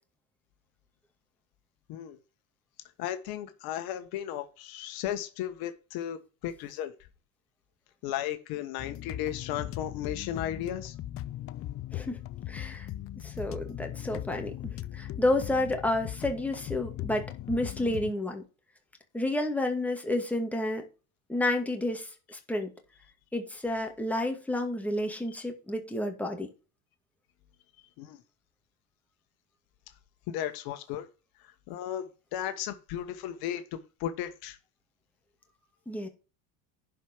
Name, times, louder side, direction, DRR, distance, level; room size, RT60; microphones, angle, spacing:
voice 1, 3.0-6.9 8.0-10.9 27.8-28.2 30.3-31.1 31.7-34.6, left 11 dB, 65° left, 1.5 m, -35 dB
sound 1, 8.8-18.1, left 13 dB, 35° left, 0.5 m, -39 dB
voice 2, 12.5-12.9 13.2-18.4 19.1-20.8 21.3-22.7 23.3-26.5 35.9-36.1, left 1 dB, 5° left, 2.2 m, -30 dB
11.0 x 5.0 x 4.5 m
supercardioid pair, 115°, 40 cm